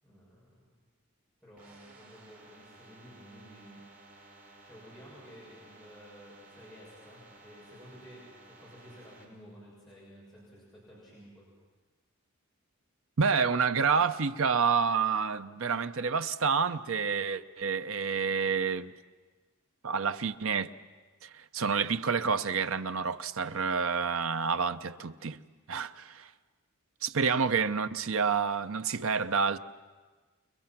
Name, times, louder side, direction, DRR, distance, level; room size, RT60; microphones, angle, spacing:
voice 1, 0.0-0.7 1.4-3.9 4.6-11.4, equal, ahead, 6.6 m, -53 dB
sound 1, 1.6-9.3, right 2 dB, 40° right, 3.8 m, -55 dB
voice 2, 13.2-18.9 19.8-20.7 21.2-25.4 25.7-26.3 27.0-29.6, right 5 dB, 70° right, 0.7 m, -28 dB
30.0 x 22.0 x 5.9 m
head